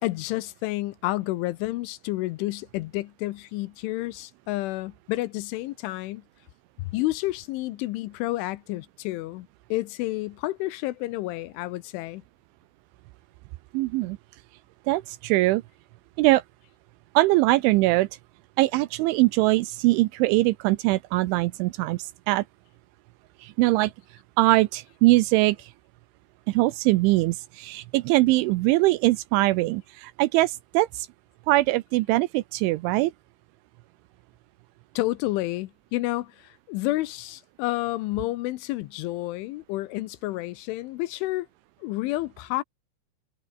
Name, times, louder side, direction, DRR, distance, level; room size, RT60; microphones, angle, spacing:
voice 1, 0.0-6.2 6.8-12.2 35.0-41.5 41.8-42.6, left 18 dB, 80° left, 3.1 m, -30 dB
voice 2, 13.7-14.2 14.9-15.6 16.2-16.4 17.1-18.1 18.6-22.4 23.4-23.9 24.4-25.7 26.5-31.1 31.5-33.1, right 19 dB, 85° right, 2.9 m, -22 dB
omnidirectional pair, 5.9 m